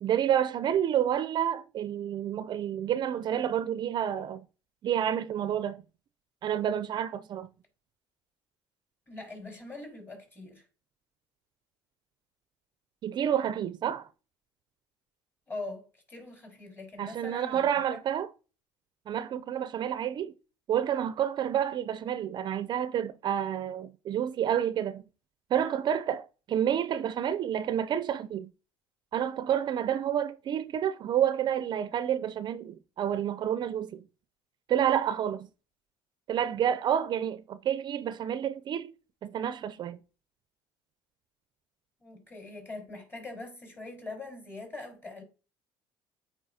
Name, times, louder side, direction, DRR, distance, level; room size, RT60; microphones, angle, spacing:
voice 1, 0.0-4.4 4.8-5.8 6.4-7.5 13.0-14.1 17.0-18.3 19.1-20.3 20.7-25.0 25.5-28.5 29.1-34.0 34.7-35.5 36.3-38.9 39.2-40.0, right 9 dB, 50° right, 0.5 m, -29 dB
voice 2, 9.1-10.6 15.5-17.8 42.0-45.2, left 2 dB, 20° left, 4.0 m, -42 dB
8.5 x 4.7 x 2.8 m
supercardioid pair, 90°, 10 cm